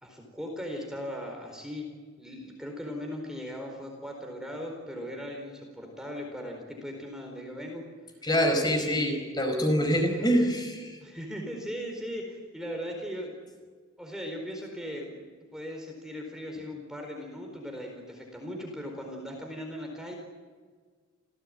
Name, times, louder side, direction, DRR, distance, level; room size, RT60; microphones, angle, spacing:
voice 1, 0.0-1.9 2.2-7.8 8.8-9.2 10.1-10.3 11.0-13.3 14.0-20.2, equal, 5° right, 1 dB, 4.4 m, -38 dB
voice 2, 8.2-11.0, equal, 20° left, 4 dB, 4.9 m, -25 dB
28.0 x 17.5 x 9.1 m, 1.6 s
head